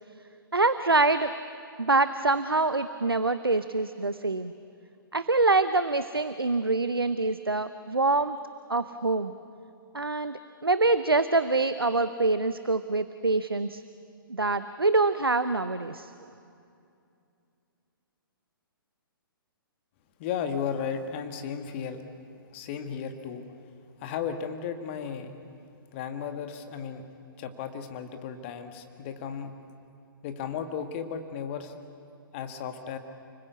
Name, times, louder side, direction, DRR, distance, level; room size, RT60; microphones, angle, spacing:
voice 1, 0.5-1.3 1.8-4.5 5.1-8.4 8.7-9.3 9.9-13.8 14.3-16.1, right 3 dB, 80° right, 12 dB, 0.8 m, -25 dB
voice 2, 20.2-22.0 22.5-23.5 24.0-25.4 25.9-27.1 27.4-29.5 30.2-31.7 32.3-33.0, left 7 dB, 30° left, 7 dB, 1.9 m, -34 dB
30.0 x 20.5 x 8.3 m, 2.5 s
figure-of-eight pair, 125°, 12 cm